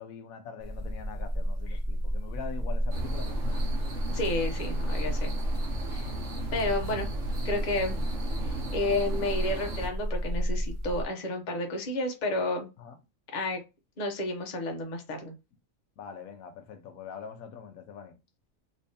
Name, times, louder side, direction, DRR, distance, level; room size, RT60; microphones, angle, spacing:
voice 1, 0.0-3.7 7.0-7.3 12.8-13.0 16.0-18.2, left 6 dB, 80° left, 1.1 m, -43 dB
sound 1, 0.6-11.1, equal, 15° left, 0.8 m, -32 dB
sound 2, 2.9-9.9, right 2 dB, 60° right, 1.3 m, -38 dB
voice 2, 4.1-5.3 5.9-6.1 6.5-7.1 7.4-8.0 8.7-12.7 13.3-13.6 14.0-15.3, left 2 dB, 40° left, 0.8 m, -31 dB
3.4 x 3.0 x 2.7 m
omnidirectional pair, 1.5 m